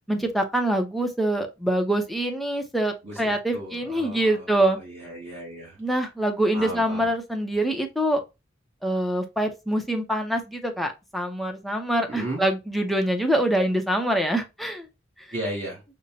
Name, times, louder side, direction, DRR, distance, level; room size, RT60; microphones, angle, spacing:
voice 1, 0.1-4.8 5.8-8.2 8.8-14.9, right 1 dB, ahead, 0.6 m, -25 dB
voice 2, 3.0-4.4 4.8-5.8 6.5-7.1 12.1-12.4 15.3-15.8, right 1 dB, 30° right, 1.0 m, -35 dB
5.3 x 2.1 x 2.7 m
head